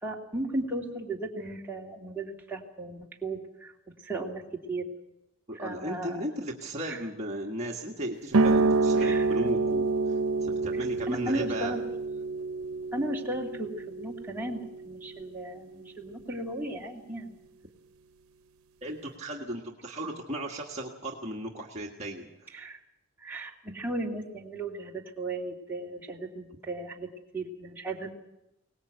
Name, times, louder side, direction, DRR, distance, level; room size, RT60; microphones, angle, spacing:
voice 1, 0.0-3.7 4.0-4.9 5.5-6.2 6.9-7.0 9.0-9.3 10.7-11.8 12.9-17.4 22.5-22.8 23.2-28.1, right 2 dB, 10° right, -3 dB, 2.5 m, -36 dB
voice 2, 5.5-11.7 18.8-22.6, right 1 dB, 30° right, -1 dB, 1.6 m, -36 dB
sound 1, 8.3-15.5, right 3 dB, 90° right, 0.8 m, -28 dB
23.0 x 19.0 x 8.0 m, 0.90 s
head